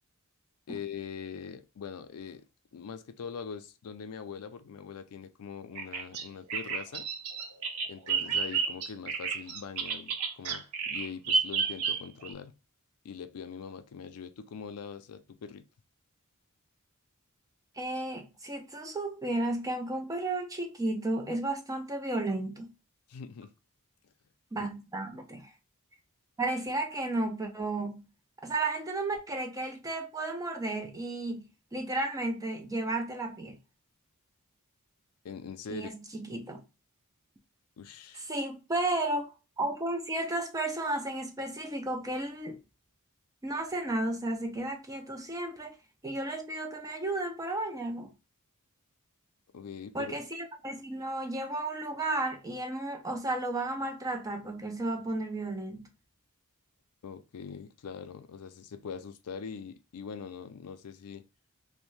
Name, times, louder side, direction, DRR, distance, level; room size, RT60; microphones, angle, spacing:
voice 1, 0.7-2.5 2.7-7.1 7.9-12.5 13.0-15.6 23.1-23.5 24.6-24.7 35.2-35.9 37.8-38.3 49.5-50.1 57.0-61.2, left 6 dB, 80° left, 0.4 m, -42 dB
Bird vocalization bird call bird song, 5.8-12.3, right 5 dB, 85° right, 0.6 m, -31 dB
voice 2, 17.8-22.7 24.5-25.5 26.4-28.1 28.4-31.5 31.7-33.6 35.7-36.6 38.1-42.6 43.4-45.8 46.0-48.1 49.9-55.9, right 2 dB, 15° right, 0.4 m, -33 dB
2.6 x 2.1 x 3.1 m
head